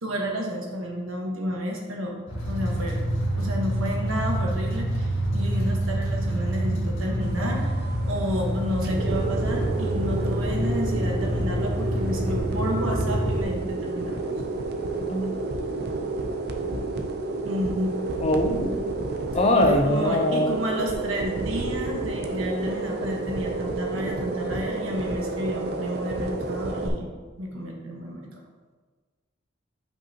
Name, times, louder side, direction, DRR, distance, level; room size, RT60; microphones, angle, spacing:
voice 1, 0.0-2.2 2.5-3.0 3.4-7.8 8.1-14.3 17.4-17.9 19.5-27.1 27.4-28.2, equal, 85° right, 0 dB, 1.4 m, -31 dB
sound 1, 2.3-13.4, equal, 75° left, 1.6 m, -27 dB
sound 2, 7.2-26.9, right 3 dB, 50° right, 0.6 m, -30 dB
voice 2, 18.2-18.8 19.3-20.6, left 1 dB, 30° left, 4 dB, 0.6 m, -22 dB
8.0 x 5.3 x 2.9 m, 1.4 s
head